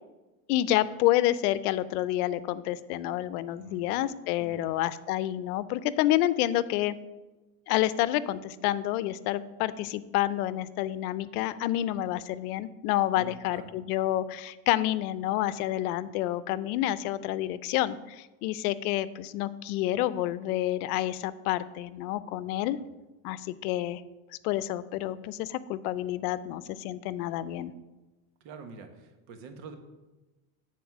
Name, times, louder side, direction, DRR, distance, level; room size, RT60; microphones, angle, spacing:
voice 1, 0.5-6.9 7.7-22.8 23.2-24.0 24.4-27.7, left 14 dB, 85° left, 16 dB, 0.6 m, -29 dB
voice 2, 3.5-3.9 4.4-4.7 13.1-13.7 22.8-22.9 28.4-29.8, right 5 dB, 80° right, 6 dB, 1.4 m, -46 dB
9.5 x 4.3 x 6.0 m, 1.1 s
supercardioid pair, 105°, 44 cm